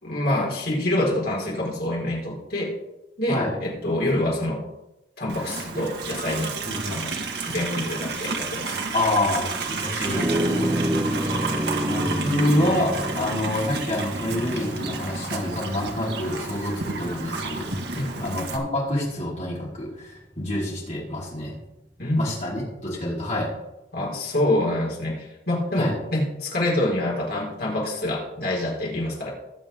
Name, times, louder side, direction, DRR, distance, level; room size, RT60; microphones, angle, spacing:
voice 1, 0.0-2.7 3.2-4.6 5.2-6.5 6.9-7.2 7.5-8.7 17.9-18.3 22.0-22.3 23.9-29.3, left 1 dB, 60° left, -3 dB, 4.6 m, -26 dB
Livestock farm animals working animals, 5.3-18.6, right 3 dB, 65° right, 1.6 m, -31 dB
voice 2, 6.7-7.0 8.9-10.6 11.9-17.7 18.2-21.5 22.1-23.5 25.8-25.9, left 1 dB, 40° left, -5 dB, 5.0 m, -27 dB
sound 1, 10.0-19.6, right 1 dB, 20° right, 0.8 m, -29 dB
21.0 x 7.2 x 3.7 m, 0.93 s
head